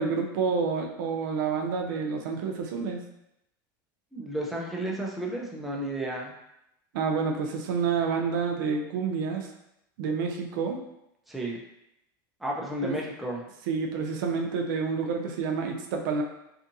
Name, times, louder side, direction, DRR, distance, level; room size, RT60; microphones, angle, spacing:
voice 1, 0.0-3.0 6.9-9.5 10.0-10.8 12.8-12.9 13.7-16.2, right 5 dB, 75° right, 2 dB, 0.5 m, -28 dB
voice 2, 4.1-6.4 11.3-11.6 12.4-13.4, right 1 dB, ahead, -3 dB, 0.4 m, -32 dB
2.6 x 2.5 x 2.6 m, 0.83 s
supercardioid pair, 135°, 11 cm